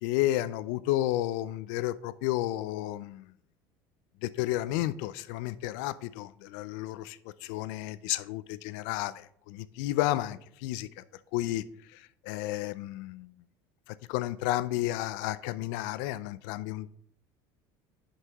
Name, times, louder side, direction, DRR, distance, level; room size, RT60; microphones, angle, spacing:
voice 1, 0.0-3.3 4.2-11.0 11.3-11.6 11.9-13.3 13.9-16.9, left 15 dB, 85° left, 0.4 m, -32 dB
8.3 x 5.6 x 3.5 m
cardioid pair, 145°, 9 cm